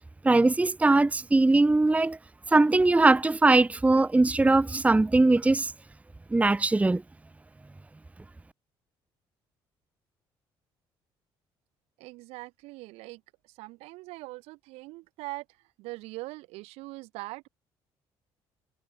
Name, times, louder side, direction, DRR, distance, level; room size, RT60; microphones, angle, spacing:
voice 1, 0.2-2.2 2.5-5.7 6.3-7.0, right 2 dB, 15° right, 0.8 m, -21 dB
voice 2, 12.0-13.2 13.6-15.5 15.8-17.5, right 22 dB, 85° right, 7.3 m, -41 dB
supercardioid pair, 70°, 10 cm